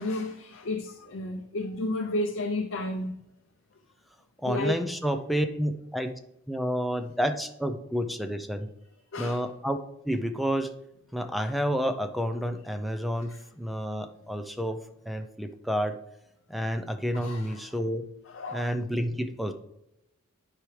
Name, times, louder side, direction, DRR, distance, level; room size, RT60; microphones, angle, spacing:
voice 1, 0.0-3.2 4.5-4.8 9.1-9.4 13.3-13.4 17.1-17.6 18.3-18.7, left 2 dB, 60° left, 0.6 m, -32 dB
voice 2, 4.4-6.2 6.5-8.7 9.2-9.8 10.0-10.7 11.1-14.8 15.1-16.0 16.5-18.0 18.5-19.5, equal, ahead, 0.5 m, -30 dB
10.5 x 4.9 x 3.3 m
head